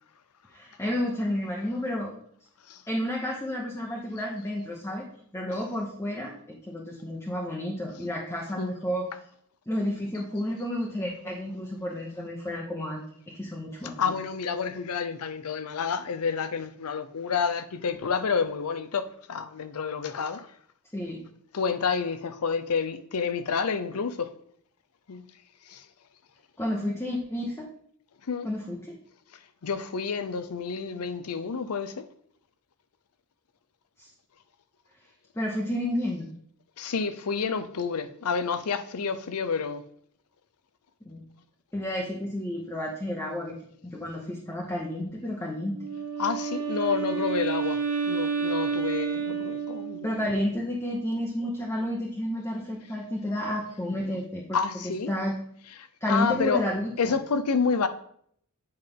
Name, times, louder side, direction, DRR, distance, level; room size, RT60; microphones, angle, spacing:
voice 1, 0.5-2.1 2.9-5.1 5.3-9.1 9.7-13.0 13.3-14.1 20.9-21.2 26.6-27.7 28.4-29.0 34.0-34.1 35.3-36.3 41.0-41.2 41.7-45.9 50.0-54.4 54.8-55.4 56.0-57.1, left 1 dB, 10° left, 0.9 m, -31 dB
voice 2, 14.0-20.5 21.5-24.3 25.1-25.2 25.7-25.8 28.3-28.5 29.6-32.0 36.8-39.8 46.2-47.8 48.1-50.2 54.5-55.1 56.1-56.6 57.0-57.9, left 5 dB, 80° left, 0.6 m, -29 dB
Wind instrument woodwind instrument, 45.7-50.2, right 6 dB, 70° right, 1.2 m, -30 dB
7.9 x 5.3 x 3.6 m
head